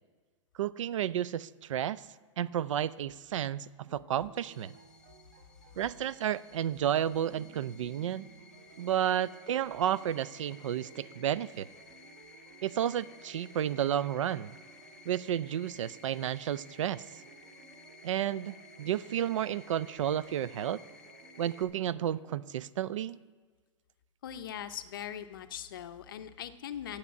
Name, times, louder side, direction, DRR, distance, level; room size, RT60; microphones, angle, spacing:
voice 1, 0.6-2.0 2.4-4.7 5.8-8.3 8.8-11.7 12.6-14.5 15.1-17.0 18.0-20.8 21.4-23.2, right 10 dB, 75° right, 19 dB, 0.4 m, -32 dB
sound 1, 3.9-22.5, right 6 dB, 30° right, 0.8 m, -57 dB
sound 2, 4.4-21.6, left 3 dB, 5° left, 0.6 m, -56 dB
voice 2, 24.2-27.0, left 10 dB, 45° left, 10 dB, 0.5 m, -41 dB
8.6 x 6.7 x 8.2 m, 1.5 s
hypercardioid pair, 175°, 16 cm